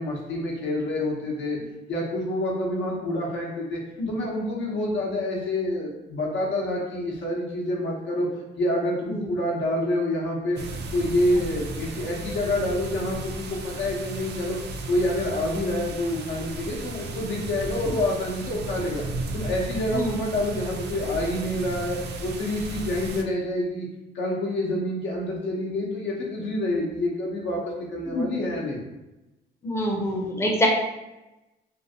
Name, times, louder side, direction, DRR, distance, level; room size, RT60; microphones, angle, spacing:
voice 1, 0.0-1.6 1.9-3.8 4.1-8.3 8.6-10.6 10.9-14.6 14.9-19.0 19.3-23.9 24.1-28.8, left 1 dB, 70° left, -2 dB, 0.9 m, -27 dB
sound 1, 10.5-23.2, right 2 dB, 60° right, 0.5 m, -35 dB
voice 2, 29.6-30.7, left 1 dB, 15° left, 0 dB, 0.6 m, -25 dB
2.8 x 2.6 x 2.8 m, 1.0 s
cardioid pair, 90°, 20 cm